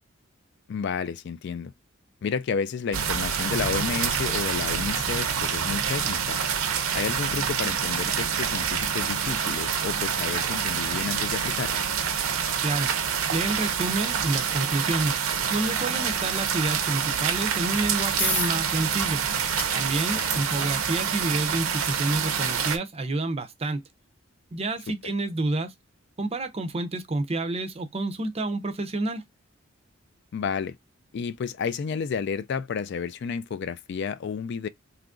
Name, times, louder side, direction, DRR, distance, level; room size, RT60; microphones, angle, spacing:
voice 1, 0.7-1.7 2.2-6.4 6.9-11.8 20.3-20.4 24.9-25.0 30.3-30.8 31.1-34.7, left 6 dB, 55° left, 0.3 m, -31 dB
sound 1, 2.9-22.8, right 7 dB, 80° right, 0.6 m, -27 dB
voice 2, 13.3-15.2 15.5-19.2 19.7-23.8 24.5-25.7 26.2-29.2, right 2 dB, 30° right, 0.5 m, -29 dB
sound 2, 18.2-32.6, left 1 dB, 10° left, 0.7 m, -40 dB
2.9 x 2.4 x 3.6 m
head